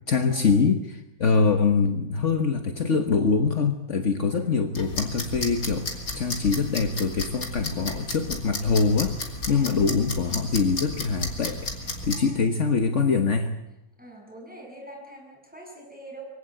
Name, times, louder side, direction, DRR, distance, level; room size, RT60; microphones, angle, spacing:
voice 1, 0.1-9.1 9.5-11.7 12.0-13.5, left 5 dB, 55° left, 6 dB, 1.6 m, -24 dB
sound 1, 4.8-12.2, left 2 dB, 75° left, 3.6 m, -33 dB
voice 2, 12.1-12.5 14.0-16.2, right 1 dB, 5° right, 0 dB, 7.8 m, -44 dB
24.5 x 16.5 x 9.1 m, 0.88 s
omnidirectional pair, 1.5 m